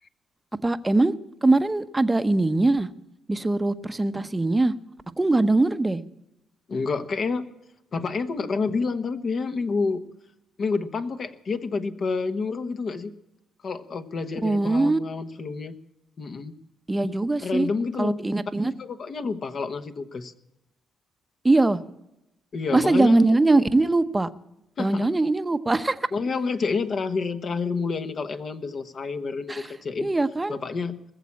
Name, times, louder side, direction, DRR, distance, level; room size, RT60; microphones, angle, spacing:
voice 1, 0.6-1.2 1.4-2.9 3.3-4.7 5.2-6.0 14.4-15.0 16.9-17.7 18.0-18.7 21.4-21.8 22.7-24.3 24.8-26.1 29.5-29.7 30.0-30.6, right 2 dB, 15° right, 12 dB, 0.8 m, -21 dB
voice 2, 6.7-7.4 7.9-10.0 10.6-13.1 13.6-15.7 16.2-16.5 17.4-18.2 18.6-20.3 22.5-23.3 24.8-25.1 26.1-30.1 30.5-31.0, left 4 dB, 50° left, 8 dB, 1.2 m, -29 dB
20.0 x 7.4 x 8.4 m, 0.88 s
cardioid pair, 90°, 0 cm